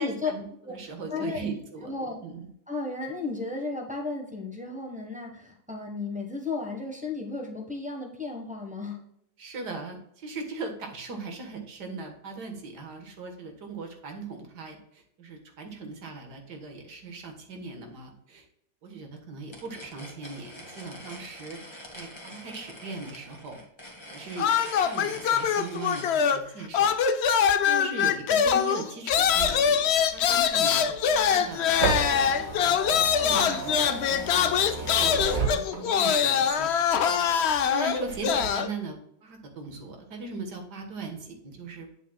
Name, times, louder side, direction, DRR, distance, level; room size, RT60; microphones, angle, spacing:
voice 1, 0.0-1.9 2.2-2.5 9.4-18.5 18.8-21.6 21.9-23.6 24.1-24.5 24.8-27.0 27.6-32.3 32.6-37.1 37.7-42.0, right 3 dB, 80° right, 4 dB, 2.0 m, -39 dB
voice 2, 1.1-1.5 1.8-2.2 2.7-9.0, left 3 dB, 5° right, 0 dB, 1.1 m, -34 dB
sound 1, 19.5-26.1, left 1 dB, 20° left, 1.3 m, -45 dB
sound 2, 24.4-26.5 26.7-38.7, left 7 dB, 75° left, 0.6 m, -24 dB
sound 3, 29.1-36.2 36.6-37.6 38.0-38.5, right 4 dB, 30° right, 2.1 m, -33 dB
7.8 x 7.5 x 2.3 m, 0.74 s
omnidirectional pair, 1.7 m